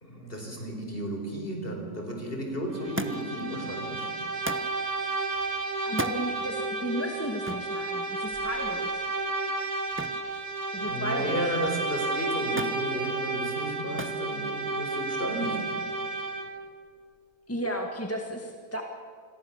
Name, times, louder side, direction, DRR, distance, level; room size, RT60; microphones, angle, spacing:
voice 1, 0.0-4.1 10.8-15.6, equal, 35° left, 2 dB, 4.8 m, -33 dB
Bowed string instrument, 2.7-16.6, right 3 dB, 60° right, 2.9 m, -32 dB
Thump thud, 3.0-3.4 4.4-4.8 5.9-6.2 7.4-7.7 10.0-10.3 10.6-11.2 12.6-12.8 14.0-14.3 15.2-15.7 16.7-16.8, right 1 dB, 10° right, 0.7 m, -35 dB
voice 2, 5.9-9.0 10.7-11.5 17.5-18.8, equal, 10° left, 2 dB, 1.7 m, -34 dB
28.0 x 22.0 x 7.3 m, 2.1 s
omnidirectional pair, 1.7 m